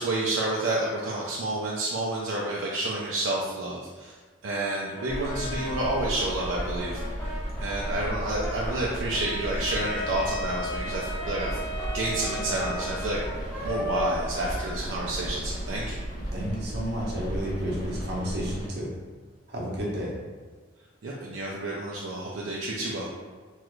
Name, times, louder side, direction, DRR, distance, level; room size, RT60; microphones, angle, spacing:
voice 1, 0.0-4.2 4.4-7.0 7.6-11.6 11.9-13.2 13.6-15.9 21.0-23.1, right 2 dB, 80° right, -4 dB, 0.4 m, -29 dB
Brass instrument, 4.5-10.2 10.8-15.6, left 1 dB, 10° left, 0.6 m, -38 dB
Rain, 5.1-18.7, equal, 50° left, 1.2 m, -35 dB
Wind instrument woodwind instrument, 9.7-13.6, equal, 70° left, 0.4 m, -36 dB
voice 2, 16.3-18.9 19.5-20.1, equal, 55° right, -4 dB, 0.8 m, -31 dB
3.1 x 2.4 x 3.0 m, 1.4 s
head